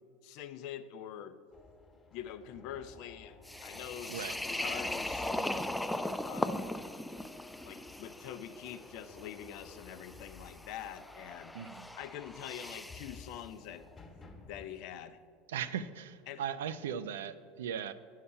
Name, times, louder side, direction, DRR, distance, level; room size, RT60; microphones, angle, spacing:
voice 1, 0.2-1.4 2.1-5.7 6.3-6.7 7.6-11.5 11.9-13.8 14.5-15.2 16.3-16.4, left 10 dB, 60° left, 10 dB, 0.5 m, -45 dB
sound 1, 1.5-14.7, left 3 dB, 25° left, 1.3 m, -55 dB
sound 2, 3.4-13.2, left 1 dB, 5° left, 0.4 m, -39 dB
voice 2, 11.5-11.9 15.5-17.9, right 8 dB, 80° right, 13 dB, 0.4 m, -38 dB
8.4 x 5.7 x 5.5 m, 2.2 s
hypercardioid pair, 85°, 0 cm